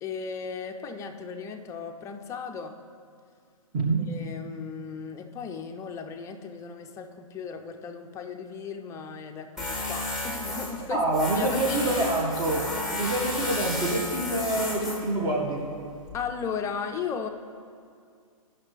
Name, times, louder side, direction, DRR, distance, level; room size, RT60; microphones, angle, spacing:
voice 1, 0.0-2.8 4.1-11.0 11.3-12.1 16.1-17.3, left 6 dB, 15° left, 5 dB, 0.5 m, -36 dB
Tools, 9.6-16.1, left 1 dB, 5° right, 1.5 m, -33 dB
voice 2, 10.9-12.6 12.9-15.6, right 2 dB, 25° right, -1 dB, 1.7 m, -26 dB
14.5 x 5.9 x 3.3 m, 2.2 s
hypercardioid pair, 125°, 18 cm